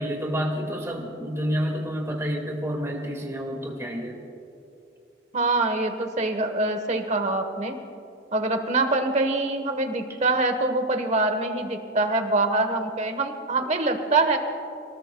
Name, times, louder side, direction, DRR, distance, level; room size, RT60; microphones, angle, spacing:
voice 1, 0.0-4.2, equal, 15° right, 0 dB, 2.0 m, -29 dB
voice 2, 5.3-7.7 8.3-14.4, right 2 dB, 40° right, 6 dB, 1.2 m, -24 dB
27.0 x 19.0 x 2.3 m, 2.8 s
head